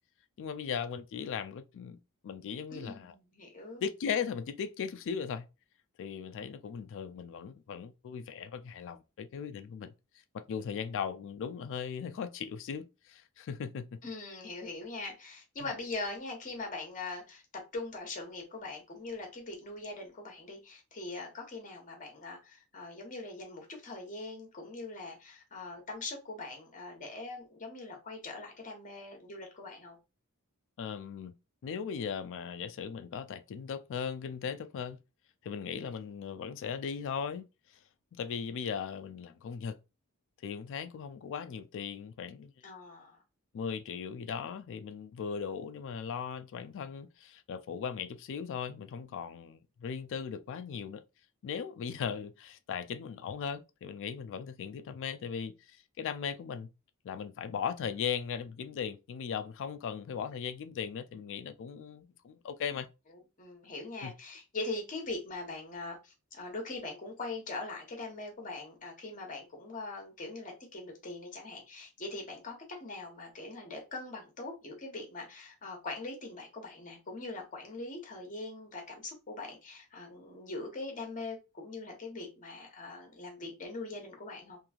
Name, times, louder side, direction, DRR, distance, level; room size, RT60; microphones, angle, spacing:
voice 1, 0.4-3.1 3.8-5.5 6.0-9.9 10.3-14.0 15.6-15.7 30.8-31.3 31.6-35.0 35.4-37.8 38.1-39.8 40.4-42.5 43.5-51.0 51.4-56.7 57.0-62.9 64.0-64.1, left 7 dB, 55° left, 0.3 m, -38 dB
voice 2, 2.7-3.8 14.0-17.4 17.7-30.0 42.6-43.2 63.1-84.6, left 2 dB, 35° left, 0.9 m, -42 dB
3.0 x 2.6 x 2.3 m
head